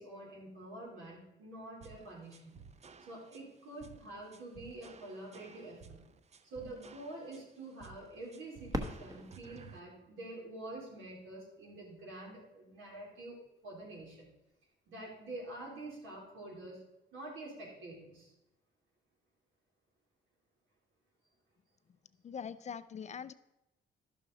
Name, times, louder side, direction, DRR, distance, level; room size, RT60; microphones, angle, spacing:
voice 1, 0.0-2.6 3.0-6.0 6.5-13.4 13.6-14.3 14.9-16.8 17.1-18.3, right 2 dB, 80° right, -3 dB, 3.7 m, -47 dB
sound 1, 1.8-9.8, right 5 dB, 35° right, 0.5 m, -56 dB
Fireworks, 8.7-11.5 12.2-12.3 12.9-13.4 15.3-15.4, right 1 dB, 20° right, 1.1 m, -43 dB
voice 2, 22.2-23.3, left 7 dB, 35° left, 14 dB, 0.4 m, -42 dB
11.5 x 6.5 x 4.0 m, 0.92 s
cardioid pair, 90°, 20 cm